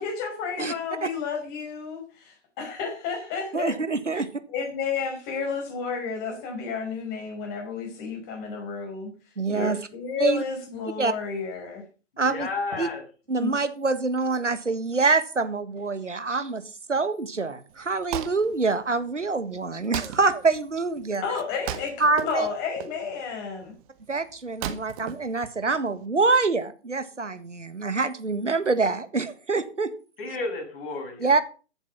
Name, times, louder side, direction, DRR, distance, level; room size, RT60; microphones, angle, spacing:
voice 1, 0.0-3.8 4.1-4.2 4.5-9.1 9.5-11.8 13.4-13.5 21.2-23.7, left 5 dB, 25° left, 2 dB, 5.4 m, -31 dB
voice 2, 3.5-4.3 9.4-9.8 10.2-10.4 11.0-11.1 12.2-12.5 12.8-12.9 13.3-16.6 16.9-21.2 22.0-22.5 24.1-29.9 31.2-31.4, right 4 dB, 90° right, 11 dB, 1.7 m, -25 dB
voice 3, 12.1-13.0 30.2-31.3, left 3 dB, 50° left, 1 dB, 7.2 m, -32 dB
Wood, 17.7-26.0, right 11 dB, 30° right, 1.5 m, -38 dB
14.5 x 8.1 x 5.5 m, 0.36 s
figure-of-eight pair, 130°, 35 cm